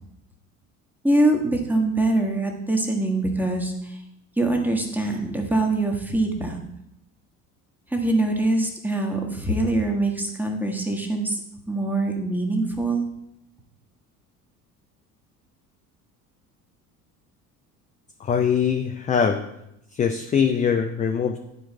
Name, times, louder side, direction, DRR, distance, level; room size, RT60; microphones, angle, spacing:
voice 1, 1.0-4.0 4.4-6.6 7.9-11.4 11.7-13.0, right 2 dB, 5° right, 1 dB, 1.4 m, -23 dB
voice 2, 18.2-19.4 19.9-21.4, left 7 dB, 15° left, 4 dB, 0.4 m, -22 dB
10.5 x 4.6 x 4.5 m, 0.80 s
figure-of-eight pair, 60°, 46 cm